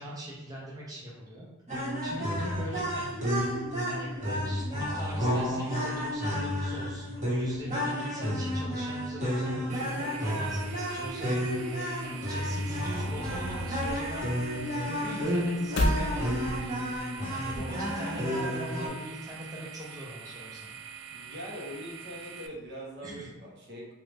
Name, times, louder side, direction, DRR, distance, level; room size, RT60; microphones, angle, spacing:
voice 1, 0.0-1.5 2.0-3.1 3.8-11.4 12.0-14.3 14.9-16.7 17.3-20.7 23.0-23.3, right 1 dB, 20° right, -6 dB, 0.6 m, -41 dB
sound 1, 1.7-18.9, equal, 35° right, 1.1 m, -31 dB
sound 2, 9.7-22.5, right 7 dB, 85° right, 0.3 m, -45 dB
sound 3, 12.7-17.8, left 1 dB, 60° left, 0.5 m, -34 dB
voice 2, 21.1-23.9, equal, 55° right, -4 dB, 0.9 m, -42 dB
3.1 x 2.4 x 3.3 m, 1.0 s
head